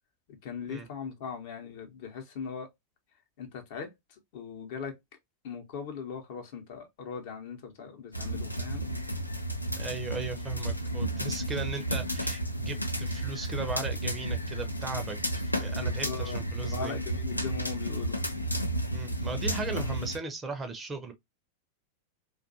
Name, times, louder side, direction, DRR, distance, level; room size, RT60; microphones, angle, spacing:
voice 1, 0.3-2.7 3.4-5.0 5.4-8.9 15.7-18.2, left 6 dB, 50° left, 0.8 m, -39 dB
sound 1, 8.1-20.2, right 1 dB, 85° left, 0.4 m, -32 dB
voice 2, 9.7-16.9 18.9-21.1, right 3 dB, 15° right, 0.5 m, -37 dB
2.5 x 2.3 x 2.6 m
figure-of-eight pair, 90°, 0 cm